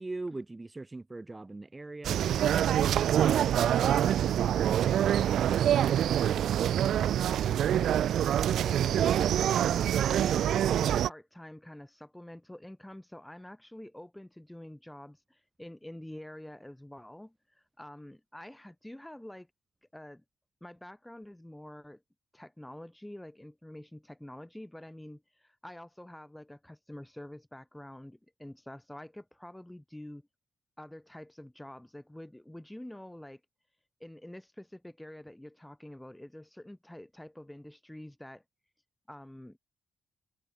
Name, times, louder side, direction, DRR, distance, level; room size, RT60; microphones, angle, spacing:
voice 1, 0.0-2.4, right 2 dB, 20° right, 1.9 m, -40 dB
sound 1, 2.0-11.1, right 10 dB, 70° right, 0.4 m, -25 dB
voice 2, 2.7-8.1 8.5-19.5 19.9-20.2 20.6-22.0 22.3-30.2 30.8-33.4 34.0-38.4 39.1-39.6, left 1 dB, 5° left, 2.0 m, -47 dB
cardioid pair, 90°, 0 cm